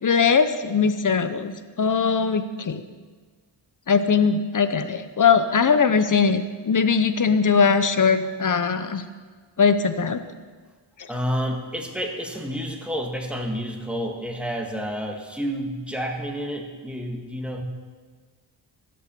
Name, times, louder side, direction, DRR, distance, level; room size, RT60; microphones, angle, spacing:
voice 1, 0.0-2.8 3.9-9.0 9.6-10.2 11.0-11.1, left 5 dB, 40° left, 11 dB, 0.9 m, -20 dB
voice 2, 11.1-17.6, equal, ahead, 1 dB, 1.7 m, -29 dB
13.0 x 7.9 x 6.9 m, 1.5 s
wide cardioid pair, 90°, 48 cm